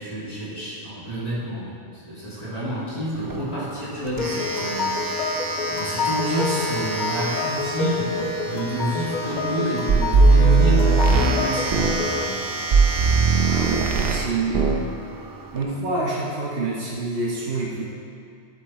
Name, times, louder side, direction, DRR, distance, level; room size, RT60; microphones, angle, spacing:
voice 1, 0.0-1.7 2.1-5.1 5.7-8.1 8.4-12.4, right 1 dB, 35° left, -9 dB, 2.6 m, -29 dB
Domestic sounds home sounds, 3.1-15.6, right 3 dB, 30° right, 0.4 m, -32 dB
sound 1, 4.2-12.2, left 4 dB, 55° left, 0.6 m, -28 dB
sound 2, 9.9-12.0 12.7-14.3 14.5-14.9, right 4 dB, 65° right, 0.9 m, -18 dB
voice 2, 13.4-14.8 15.5-17.8, right 3 dB, 80° right, -5 dB, 1.4 m, -27 dB
11.5 x 7.8 x 3.1 m, 2.6 s
omnidirectional pair, 1.1 m